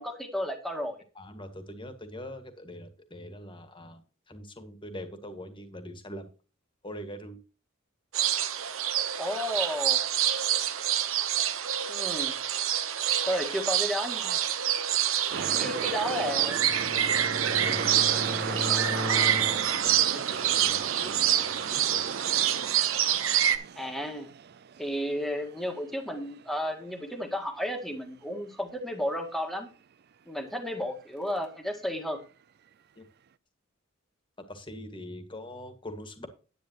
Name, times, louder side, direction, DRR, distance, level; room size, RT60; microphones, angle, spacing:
voice 1, 0.0-1.0 9.2-10.0 11.9-12.4 13.2-14.4 15.6-16.7 23.8-24.3 24.8-29.7 30.3-32.2, equal, ahead, 4 dB, 1.7 m, -32 dB
voice 2, 1.2-4.0 4.3-6.3 6.8-7.4 15.3-16.2 17.1-22.0 33.0-33.1 34.5-36.3, left 1 dB, 25° left, 9 dB, 1.8 m, -43 dB
sound 1, 8.1-23.6, right 10 dB, 75° right, 1.0 m, -27 dB
sound 2, 15.3-27.4 27.6-27.7, right 6 dB, 50° right, 0.5 m, -38 dB
Bowed string instrument, 16.0-19.9, left 1 dB, 25° right, 1.3 m, -37 dB
10.5 x 9.2 x 3.0 m, 0.35 s
head